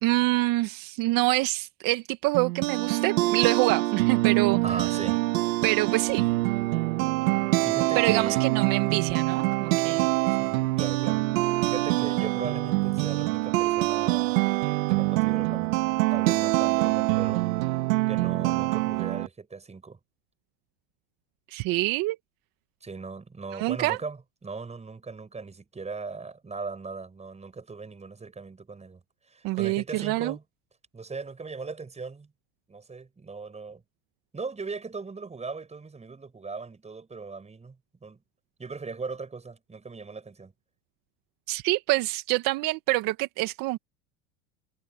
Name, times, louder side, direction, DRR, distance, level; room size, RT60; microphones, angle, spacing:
voice 1, 0.0-4.8 5.6-6.2 8.0-10.1 21.5-22.2 23.5-24.0 29.4-30.4 41.5-43.8, right 20 dB, 55° right, 1.6 m, -26 dB
sound 1, 2.3-19.3, right 20 dB, 75° right, 3.0 m, -25 dB
voice 2, 4.6-5.2 7.6-8.4 10.4-11.2 11.6-14.4 14.9-15.7 16.1-17.5 18.1-20.0 22.8-29.0 29.3-30.4 30.9-32.3 32.7-33.8 34.3-37.8 38.0-38.2 38.6-40.5, right 4 dB, 15° right, 6.8 m, -38 dB
supercardioid pair, 105°, 40 cm